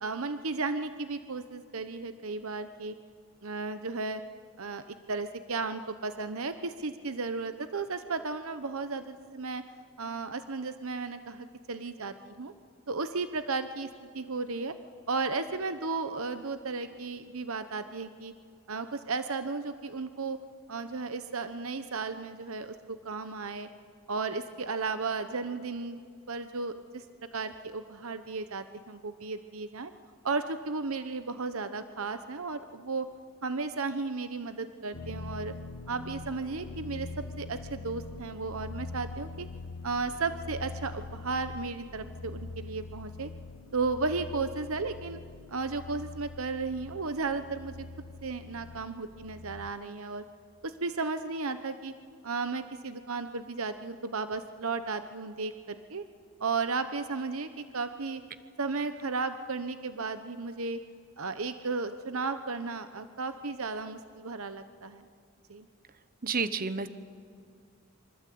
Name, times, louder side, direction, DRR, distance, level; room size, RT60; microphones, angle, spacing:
voice 1, 0.0-2.9 3.4-4.2 4.6-9.6 10.0-12.5 12.9-13.9 14.1-14.7 15.1-18.3 18.7-20.4 20.7-23.7 24.1-26.0 26.3-27.0 27.3-29.9 30.2-33.1 33.4-35.5 35.9-37.1 37.4-39.5 39.8-43.3 43.7-45.2 45.5-47.9 48.2-50.2 50.6-51.9 52.2-56.0 56.4-58.2 58.6-60.8 61.2-65.0 65.5-65.7, right 4 dB, 70° right, 10 dB, 1.0 m, -34 dB
sound 1, 34.9-49.7, left 3 dB, 90° left, 1.0 m, -43 dB
voice 2, 66.2-66.9, right 5 dB, 40° right, 12 dB, 0.9 m, -30 dB
26.5 x 25.0 x 8.6 m, 2.3 s
head